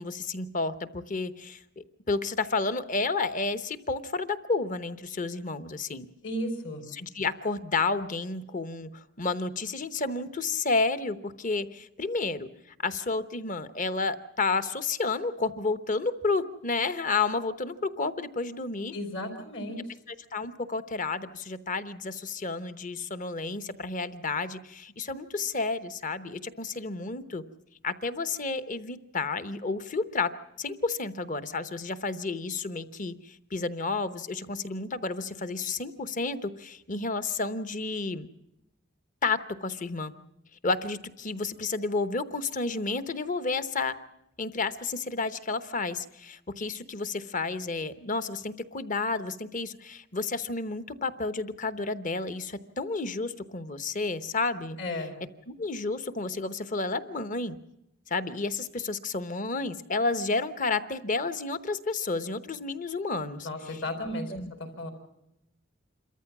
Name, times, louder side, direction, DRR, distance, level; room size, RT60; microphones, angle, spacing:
voice 1, 0.0-6.1 6.9-12.5 12.8-18.9 20.3-27.4 27.8-30.3 30.6-38.3 39.2-40.1 40.6-43.9 44.4-54.8 55.5-57.6 58.1-63.5 64.3-64.5, left 3 dB, 40° left, 12 dB, 0.9 m, -31 dB
voice 2, 6.2-6.8 18.9-19.9 54.8-55.2 63.4-64.9, left 1 dB, 65° left, 5 dB, 4.5 m, -34 dB
27.0 x 14.0 x 7.3 m, 0.85 s
head